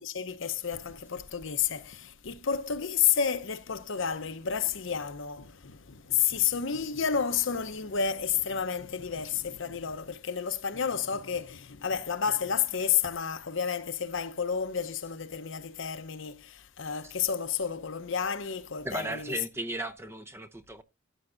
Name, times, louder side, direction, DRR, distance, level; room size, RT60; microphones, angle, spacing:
voice 1, 0.0-19.4, left 7 dB, 65° left, 0.8 m, -31 dB
voice 2, 18.8-20.8, right 1 dB, 10° right, 0.7 m, -35 dB
14.0 x 7.2 x 2.5 m
head